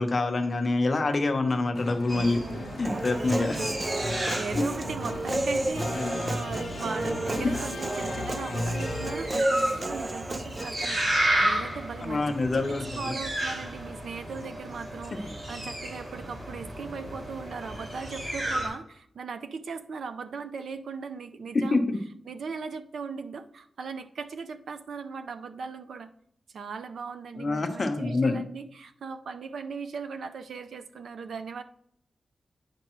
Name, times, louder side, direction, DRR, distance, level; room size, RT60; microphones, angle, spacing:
voice 1, 0.0-2.4 2.8-3.6 4.6-4.7 5.9-6.2 12.0-13.1 21.5-22.0 27.4-28.4, left 3 dB, 40° left, 5 dB, 0.8 m, -26 dB
sound 1, 1.8-9.6, left 2 dB, 80° left, 0.8 m, -37 dB
sound 2, 2.1-18.7, right 1 dB, 40° right, 3.1 m, -33 dB
voice 2, 2.1-3.1 3.4-3.8 4.0-21.9 22.3-26.1 26.5-31.6, right 5 dB, 85° right, 9 dB, 0.5 m, -38 dB
Human voice, 2.8-10.9, right 2 dB, 25° right, 0.3 m, -32 dB
9.6 x 5.1 x 3.1 m, 0.70 s
wide cardioid pair, 150°, 0 cm